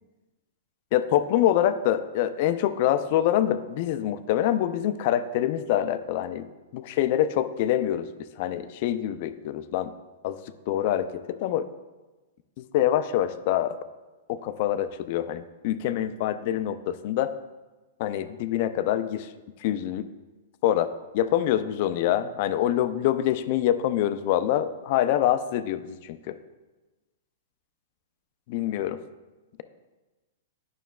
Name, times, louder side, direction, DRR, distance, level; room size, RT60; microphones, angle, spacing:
voice 1, 0.9-6.5 6.7-8.1 8.4-9.9 10.2-10.4 10.7-11.7 12.6-13.8 14.3-17.3 18.0-19.3 19.6-20.1 20.6-26.4 28.5-29.0, left 11 dB, 50° left, 11 dB, 0.4 m, -25 dB
9.1 x 5.8 x 2.3 m, 1.2 s
hypercardioid pair, 130°, 0 cm